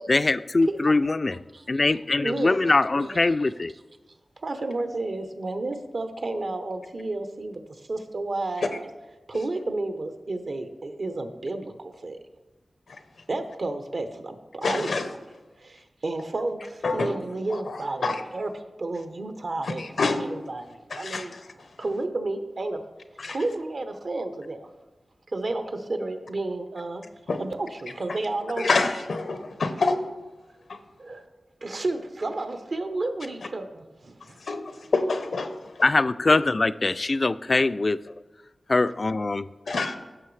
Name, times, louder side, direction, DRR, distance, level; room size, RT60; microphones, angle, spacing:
voice 1, 0.1-1.4 1.7-3.7 35.8-38.1 38.7-39.5, left 3 dB, 50° left, 13 dB, 0.3 m, -22 dB
voice 2, 2.2-3.2 4.4-8.9 9.3-12.2 13.3-15.1 15.6-22.8 23.3-24.7 25.3-27.0 27.4-28.7 31.0-31.3 31.6-34.4 34.8-34.9 39.7-39.8, right 2 dB, 70° right, 7 dB, 0.9 m, -32 dB
voice 3, 14.6-15.1 16.8-17.1 18.0-18.2 19.8-20.2 20.9-21.2 23.2-23.4 27.3-27.4 28.6-30.0 34.5-34.6 34.9-35.6 39.7-40.0, left 3 dB, 85° left, 8 dB, 0.8 m, -26 dB
14.5 x 6.1 x 3.3 m, 1.1 s
cardioid pair, 50°, 0 cm